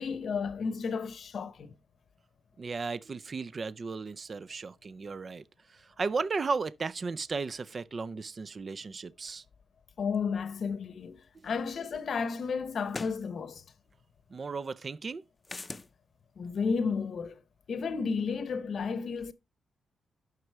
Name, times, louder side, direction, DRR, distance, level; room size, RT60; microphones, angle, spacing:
voice 1, 0.0-1.7 10.0-13.6 16.4-17.4 17.7-19.3, left 5 dB, 60° left, 0.8 m, -32 dB
voice 2, 2.6-5.4 5.7-9.4 14.3-15.2, right 4 dB, 40° right, 0.5 m, -35 dB
sound 1, 11.5-11.6 12.9-13.2 15.4-15.9, left 3 dB, 25° left, 0.6 m, -39 dB
9.5 x 6.1 x 4.6 m
cardioid pair, 100°, 0 cm